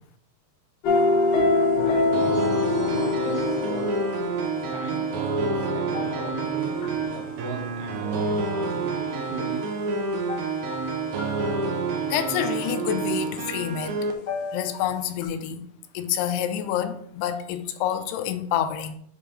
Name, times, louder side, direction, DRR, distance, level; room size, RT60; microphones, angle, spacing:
sound 1, 0.8-7.1 10.3-10.9 11.2-11.5 14.3-14.9 15.2-15.3, left 3 dB, 60° left, 1.6 m, -26 dB
voice 1, 1.8-3.9 4.6-9.6, right 3 dB, 70° right, -1 dB, 2.8 m, -39 dB
sound 2, 2.1-14.1, right 4 dB, 85° right, 1.6 m, -28 dB
voice 2, 12.1-13.9 14.5-15.7 15.9-19.0, left 10 dB, 80° left, 8 dB, 2.6 m, -28 dB
7.8 x 3.6 x 4.9 m, 0.66 s
omnidirectional pair, 4.8 m